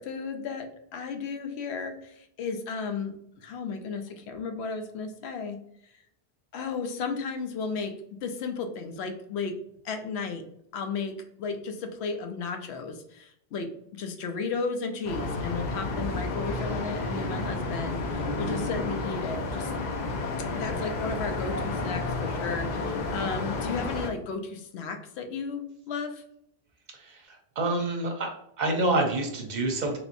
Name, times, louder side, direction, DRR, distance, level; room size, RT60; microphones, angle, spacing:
voice 1, 0.0-3.1 3.4-5.6 5.8-5.9 6.5-7.9 8.2-9.5 9.8-10.4 10.7-19.7 20.5-26.2, left 4 dB, 80° left, 5 dB, 0.8 m, -34 dB
sound 1, 15.0-24.1, left 2 dB, 50° left, 0.6 m, -31 dB
voice 2, 27.0-28.3 28.6-30.0, right 2 dB, 50° right, 3 dB, 0.7 m, -27 dB
3.4 x 2.9 x 2.5 m, 0.73 s
omnidirectional pair, 1.1 m